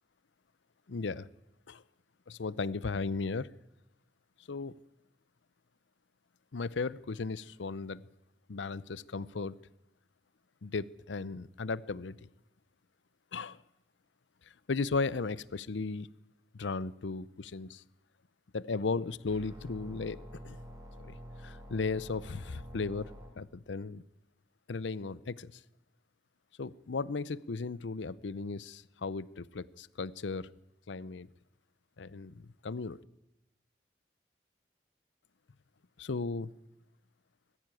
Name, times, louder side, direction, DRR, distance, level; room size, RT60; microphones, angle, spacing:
voice 1, 0.9-1.3 1.7-1.8 2.3-3.5 4.5-4.8 6.5-8.0 8.5-9.5 10.6-12.3 13.3-13.6 14.7-16.1 16.5-17.8 18.5-20.6 21.0-21.2 21.4-23.1 23.4-24.0 24.7-25.6 26.6-30.5 30.9-31.3 32.0-33.0 36.0-36.5, left 4 dB, 90° left, 20 dB, 0.6 m, -36 dB
sound 1, 19.3-23.3, equal, 20° right, 3.3 m, -47 dB
20.0 x 14.5 x 9.1 m, 0.91 s
head